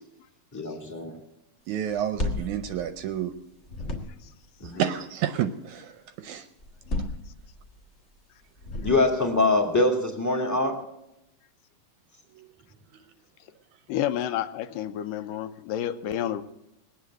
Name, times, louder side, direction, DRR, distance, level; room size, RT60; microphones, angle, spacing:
voice 1, 0.5-1.1 4.6-4.8 8.8-10.8, left 2 dB, 10° left, 3 dB, 1.2 m, -24 dB
voice 2, 1.7-3.3 4.6-6.5 12.4-12.5, right 10 dB, 75° right, 10 dB, 1.9 m, -30 dB
sound 1, 1.9-3.4 3.6-4.4 6.6-7.8 8.6-9.4, left 1 dB, 30° left, 1.3 m, -33 dB
voice 3, 13.9-16.4, left 11 dB, 80° left, 10 dB, 2.3 m, -29 dB
20.0 x 8.7 x 7.9 m, 0.86 s
omnidirectional pair, 3.9 m